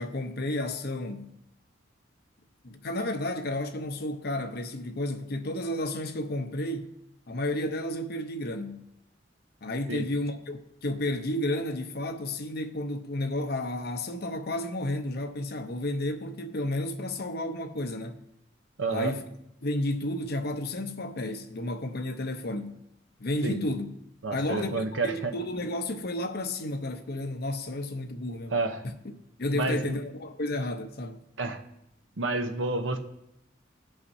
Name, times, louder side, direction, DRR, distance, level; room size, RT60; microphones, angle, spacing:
voice 1, 0.0-1.3 2.6-6.9 7.3-8.8 9.6-18.2 18.9-19.2 19.6-22.8 23.2-23.9 24.3-28.5 28.8-28.9 29.4-31.2, left 1 dB, 55° left, 0.7 m, -32 dB
voice 2, 18.8-19.2 23.4-23.6 24.2-25.3 28.5-28.8 29.5-30.0 31.4-31.6 32.2-33.0, right 3 dB, 85° right, 0.8 m, -29 dB
16.0 x 5.7 x 2.7 m
head